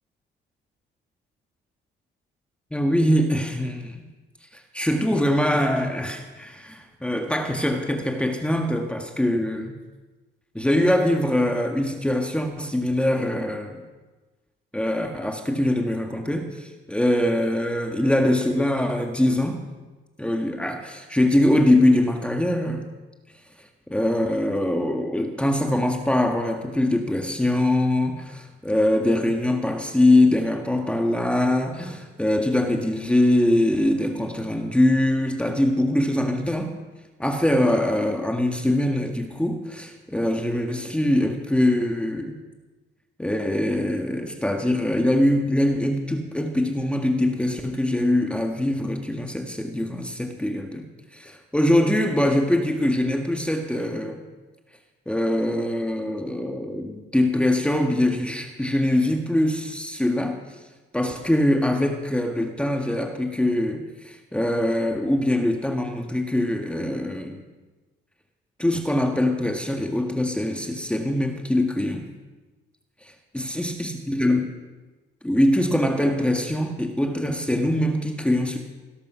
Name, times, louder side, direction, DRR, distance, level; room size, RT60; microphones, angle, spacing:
voice 1, 2.7-4.0 4.5-9.7 10.5-13.8 14.7-19.6 20.2-22.9 23.9-36.8 37.2-42.3 43.2-50.8 51.1-54.2 55.0-60.4 60.9-67.4 68.6-72.1 73.0-74.5 75.2-78.6, left 1 dB, 5° left, 3 dB, 1.7 m, -23 dB
17.5 x 12.0 x 5.7 m, 1.2 s
cardioid pair, 90°, 20 cm